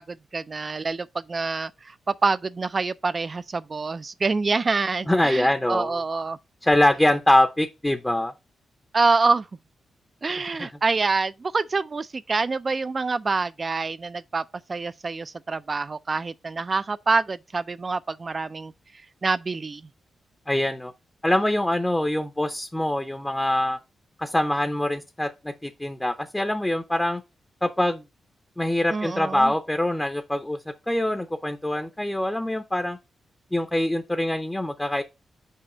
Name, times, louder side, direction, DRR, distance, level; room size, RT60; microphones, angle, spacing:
voice 1, 0.0-6.4 8.9-9.5 10.2-14.4 14.7-18.7 19.2-19.8 28.9-29.5, right 4 dB, 40° right, 0.4 m, -26 dB
voice 2, 5.1-6.0 6.6-8.3 10.5-10.7 20.5-20.9 21.2-23.8 24.2-27.2 27.6-28.0 28.6-30.6 30.9-33.0 33.5-35.0, left 1 dB, 10° left, 0.6 m, -24 dB
5.6 x 5.0 x 3.8 m
cardioid pair, 70°, 0 cm